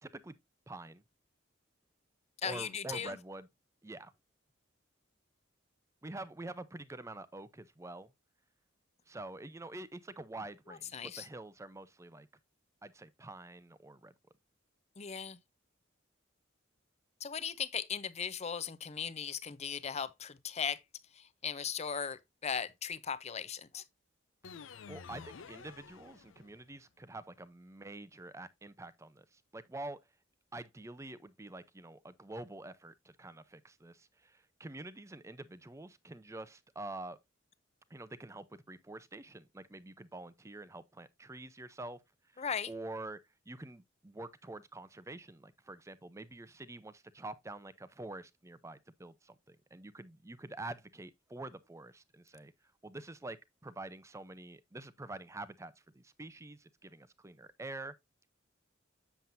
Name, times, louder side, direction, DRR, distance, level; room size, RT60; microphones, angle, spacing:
voice 1, 0.0-0.3 0.7-1.0 2.4-3.5 3.8-4.1 6.0-8.1 9.1-12.3 12.8-14.1 24.9-30.0 30.5-37.2 37.9-42.0 42.3-43.2 43.5-52.5 52.8-57.9, right 2 dB, 15° right, 0.5 m, -47 dB
voice 2, 2.4-3.2 10.7-11.3 15.0-15.4 17.2-20.8 21.1-23.8 42.4-42.7, left 7 dB, 35° left, 0.6 m, -38 dB
sound 1, 24.4-26.8, left 5 dB, 80° left, 0.6 m, -50 dB
7.6 x 7.1 x 2.6 m
head